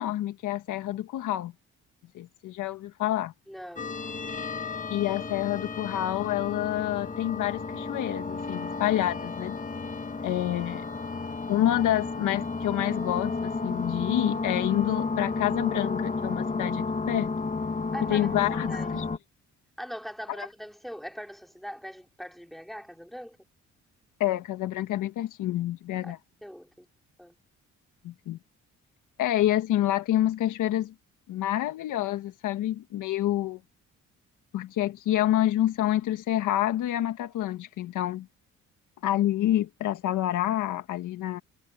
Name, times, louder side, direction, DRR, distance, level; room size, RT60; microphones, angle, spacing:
voice 1, 0.0-1.5 2.1-3.3 4.9-9.6 10.2-10.8 11.5-17.3 18.1-19.0 24.2-26.2 28.0-28.4 29.2-30.9 31.3-33.6 34.5-38.3 39.0-41.4, left 13 dB, 85° left, 1.6 m, -28 dB
voice 2, 3.5-3.9 17.9-18.9 19.8-23.4 26.0-26.1 26.4-26.9 27.2-27.3, equal, ahead, 4.3 m, -41 dB
sound 1, 3.8-19.2, left 4 dB, 25° left, 1.8 m, -32 dB
cardioid pair, 90°, 30 cm